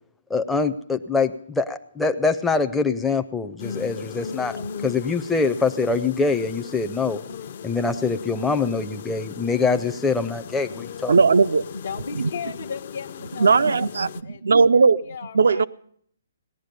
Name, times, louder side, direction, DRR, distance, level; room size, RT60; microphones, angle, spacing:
voice 1, 0.3-7.2 7.6-11.1, left 4 dB, 5° left, 0.5 m, -24 dB
sound 1, 3.6-14.2, left 7 dB, 50° left, 0.6 m, -38 dB
voice 2, 11.1-11.6 12.1-12.3 13.4-15.0 15.3-15.6, right 4 dB, 80° right, 0.5 m, -17 dB
voice 3, 11.7-14.4 14.7-15.7, left 6 dB, 75° left, 0.9 m, -36 dB
18.0 x 11.5 x 5.2 m
hypercardioid pair, 150°, 0 cm